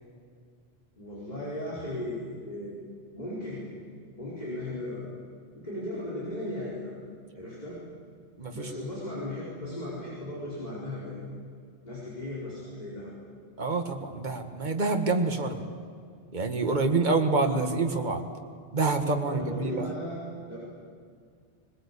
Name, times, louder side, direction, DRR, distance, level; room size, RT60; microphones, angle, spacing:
voice 1, 1.0-2.8 3.1-3.6 4.2-5.1 5.5-6.9 7.3-7.8 8.5-11.2 11.8-13.1 19.3-20.2 20.5-20.6, left 1 dB, 35° left, -7 dB, 4.8 m, -36 dB
voice 2, 8.4-8.7 13.6-15.6 16.3-18.3 18.7-19.9, right 3 dB, 40° right, 5 dB, 1.8 m, -27 dB
22.0 x 21.5 x 8.4 m, 2.2 s
omnidirectional pair, 1.2 m